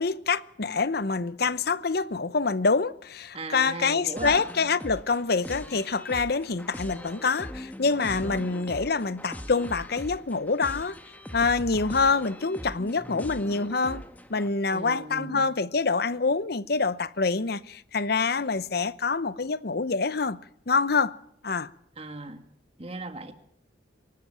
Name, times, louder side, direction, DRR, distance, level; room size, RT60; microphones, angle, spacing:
voice 1, 0.0-11.0 11.3-14.0 14.3-20.4 20.7-21.1 21.4-21.7, left 4 dB, 55° left, 0.8 m, -26 dB
voice 2, 3.3-4.4 8.2-8.5 14.7-15.5 22.0-22.4 22.8-23.3, right 2 dB, 30° right, 2.0 m, -37 dB
sound 1, 4.2-14.5, equal, 10° left, 1.3 m, -41 dB
24.0 x 13.5 x 9.0 m
head